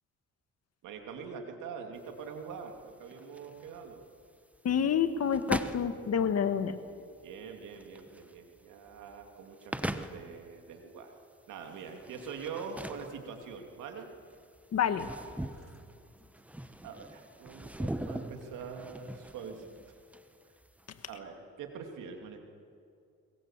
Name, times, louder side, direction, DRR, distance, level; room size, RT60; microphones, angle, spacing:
voice 1, 0.8-4.0 7.2-11.2 11.5-14.1 15.6-15.7 16.8-20.0 21.1-22.4, right 5 dB, 90° right, 4 dB, 2.6 m, -44 dB
sound 1, 2.0-21.1, right 1 dB, 5° right, 1.1 m, -42 dB
voice 2, 4.6-6.8 14.7-15.1, left 7 dB, 55° left, 10 dB, 1.6 m, -28 dB
22.0 x 22.0 x 7.4 m, 2.4 s
cardioid pair, 90°, 30 cm